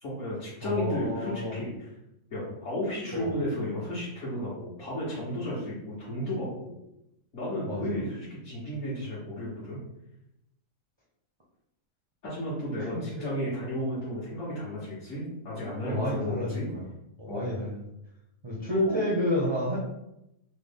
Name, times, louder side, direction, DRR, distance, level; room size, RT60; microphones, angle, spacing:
voice 1, 0.0-1.9 2.3-6.8 7.3-9.8 12.2-16.7 17.3-17.6 18.7-19.1, left 1 dB, 60° left, -9 dB, 1.4 m, -33 dB
voice 2, 0.6-1.5 3.1-3.3 7.7-8.0 13.0-13.1 15.8-16.8 17.2-17.8 18.4-19.8, left 1 dB, 40° right, -5 dB, 0.3 m, -30 dB
3.7 x 2.1 x 3.4 m, 0.85 s
omnidirectional pair, 1.4 m